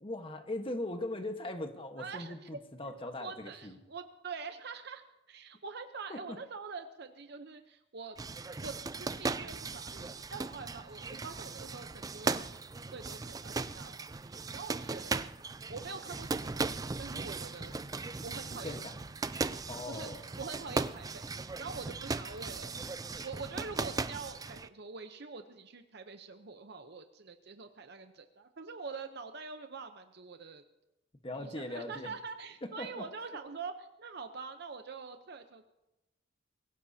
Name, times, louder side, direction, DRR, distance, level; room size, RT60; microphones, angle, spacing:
voice 1, 0.0-3.8 6.1-6.4 18.5-19.0 19.7-20.2 31.2-32.1 32.6-33.1, left 1 dB, 30° left, 6 dB, 1.3 m, -40 dB
voice 2, 2.0-2.3 3.2-8.2 8.6-8.7 9.0-12.5 12.9-13.9 14.2-15.2 15.7-17.7 18.2-18.8 19.9-21.3 21.6-22.8 23.2-30.6 31.4-35.7, right 4 dB, 60° right, 7 dB, 0.8 m, -45 dB
sound 1, 8.2-24.7, right 3 dB, 20° right, 0.4 m, -38 dB
23.0 x 16.0 x 2.8 m, 0.95 s
head